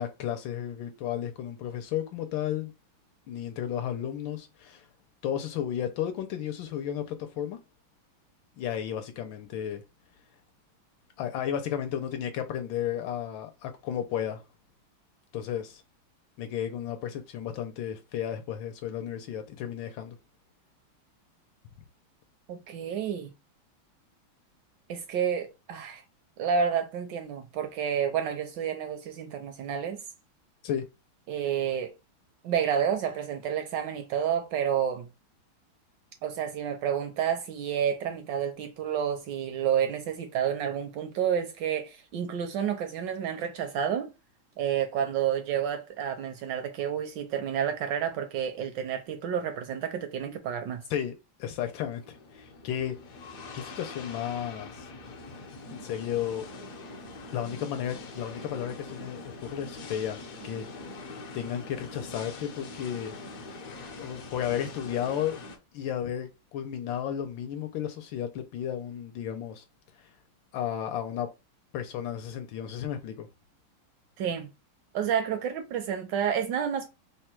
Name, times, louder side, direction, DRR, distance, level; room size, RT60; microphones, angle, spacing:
voice 1, 0.0-2.7 3.3-4.9 5.2-7.6 8.6-9.8 11.2-14.4 15.3-15.8 16.4-20.2 30.6-30.9 50.9-54.9 55.7-56.5 57.3-60.7 61.3-63.1 64.0-65.4 65.7-69.6 70.0-70.1 70.5-71.3 71.7-73.3, left 10 dB, 75° left, 1.3 m, -33 dB
voice 2, 22.5-23.3 24.9-26.0 26.4-30.0 31.3-31.9 32.4-35.1 36.2-44.1 44.6-50.8 74.2-74.5 74.9-76.9, right 8 dB, 75° right, 1.1 m, -30 dB
sound 1, 51.5-65.6, left 3 dB, 60° left, 1.0 m, -43 dB
3.5 x 2.2 x 4.3 m
omnidirectional pair, 2.2 m